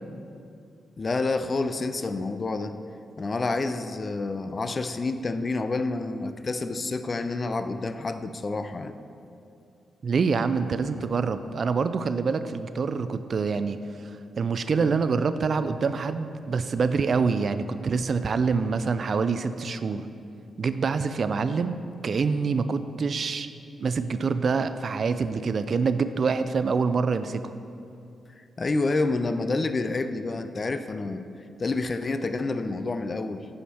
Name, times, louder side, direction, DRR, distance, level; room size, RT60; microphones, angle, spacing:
voice 1, 1.0-2.7 3.2-8.9 28.6-31.2 31.6-33.5, left 3 dB, 45° left, 10 dB, 0.4 m, -28 dB
voice 2, 10.0-13.8 14.4-20.1 20.6-23.5 23.8-27.4, right 5 dB, 55° right, 11 dB, 0.3 m, -26 dB
9.1 x 6.4 x 2.9 m, 2.6 s
hypercardioid pair, 40°, 0 cm